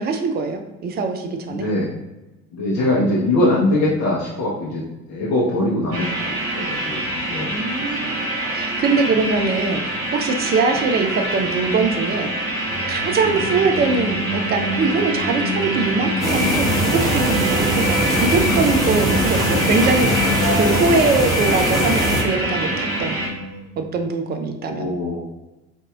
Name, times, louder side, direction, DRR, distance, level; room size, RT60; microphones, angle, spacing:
voice 1, 0.0-1.7 2.8-3.0 7.5-9.8 10.1-12.3 12.9-23.2 23.8-25.0, right 4 dB, 25° right, 5 dB, 0.4 m, -22 dB
voice 2, 1.5-1.9 2.5-4.8 5.1-7.0 7.3-7.6 8.0-8.1 13.2-13.4 24.6-25.2, left 1 dB, 40° left, -5 dB, 0.8 m, -22 dB
sound 1, 5.9-23.3, right 1 dB, 70° right, 1.1 m, -26 dB
Singing, 12.6-23.8, right 1 dB, 45° right, 1.1 m, -29 dB
sound 2, 16.2-22.2, equal, ahead, 1.4 m, -21 dB
4.0 x 2.6 x 2.3 m, 1.0 s
figure-of-eight pair, 60°, 42 cm